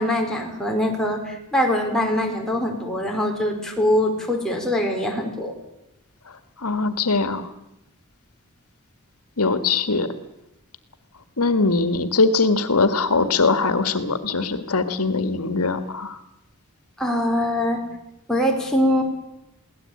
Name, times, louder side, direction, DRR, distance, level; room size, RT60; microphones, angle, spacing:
voice 1, 0.0-5.5 17.0-17.8 18.3-19.0, left 1 dB, ahead, 0 dB, 4.7 m, -23 dB
voice 2, 6.6-7.5 9.4-10.1 11.4-16.2, left 3 dB, 85° left, 11 dB, 1.7 m, -21 dB
23.0 x 17.5 x 8.7 m, 0.87 s
head